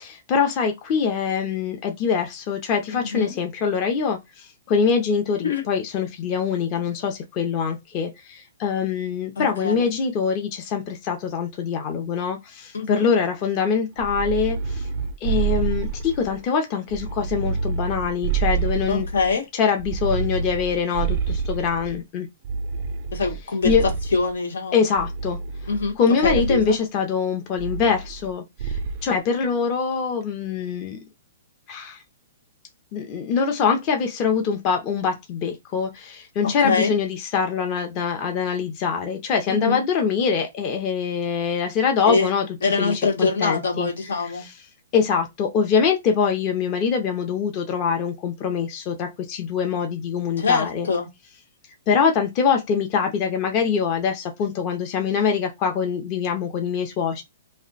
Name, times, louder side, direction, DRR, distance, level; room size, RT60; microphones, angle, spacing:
voice 1, 0.3-4.2 4.7-8.1 8.6-12.4 12.9-14.6 15.2-19.1 19.5-21.2 21.5-22.3 23.6-23.8 24.7-25.4 26.0-28.4 29.0-31.0 31.7-31.9 32.9-35.9 36.4-42.5 42.8-43.9 44.9-50.9 51.9-57.2, left 6 dB, 25° left, 0.5 m, -23 dB
voice 2, 2.9-3.3 5.4-5.6 9.4-9.9 12.7-13.0 18.9-19.4 23.1-23.7 24.1-24.8 25.7-26.0 26.2-26.7 36.4-36.9 39.5-39.8 42.0-44.4 50.4-51.1, left 4 dB, 90° left, 1.0 m, -24 dB
sound 1, 14.0-16.4 16.9-19.3 19.8-22.0 22.4-24.3 25.0-25.9 26.2-26.7 27.6-28.3 28.6-29.1, right 5 dB, 35° right, 0.3 m, -27 dB
2.4 x 2.1 x 3.8 m
hypercardioid pair, 165°, 0 cm